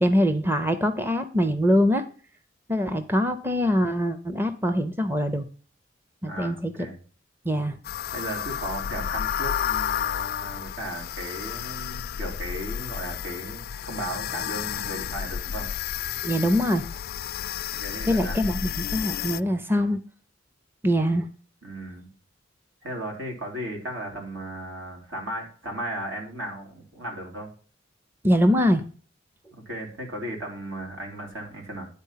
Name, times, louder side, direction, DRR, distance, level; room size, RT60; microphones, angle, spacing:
voice 1, 0.0-2.0 2.7-5.4 6.2-6.7 7.4-7.8 16.2-16.8 18.1-20.0 20.8-21.3 28.2-28.8, equal, 10° right, 9 dB, 0.6 m, -23 dB
voice 2, 6.2-7.0 8.1-15.7 17.7-18.5 21.6-22.1 22.8-27.5 29.6-31.9, right 1 dB, 80° right, 0 dB, 3.3 m, -36 dB
sound 1, 7.8-19.4, left 9 dB, 50° left, 0.3 m, -31 dB
10.5 x 4.2 x 5.6 m, 0.41 s
head